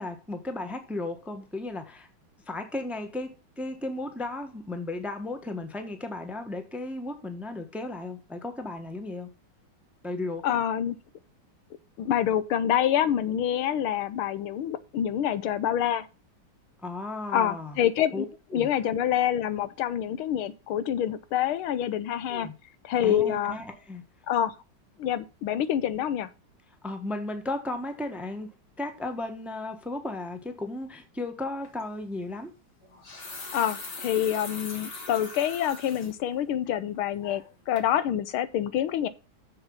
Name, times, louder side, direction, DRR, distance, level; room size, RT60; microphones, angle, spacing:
voice 1, 0.0-2.1 2.5-9.3 10.0-10.6 16.8-17.8 18.1-18.3 18.5-18.7 22.3-22.5 23.0-24.0 26.8-32.5, left 2 dB, ahead, 0.9 m, -35 dB
voice 2, 10.4-10.9 12.0-16.1 17.3-18.2 18.5-22.5 22.8-23.6 24.3-24.5 25.0-26.3 33.5-39.1, left 10 dB, 85° left, 1.7 m, -27 dB
sound 1, 31.6-31.8 32.8-36.1 36.6-36.7 37.2-37.5 37.8-37.9, left 3 dB, 55° left, 2.5 m, -41 dB
7.1 x 7.0 x 5.4 m
omnidirectional pair, 2.3 m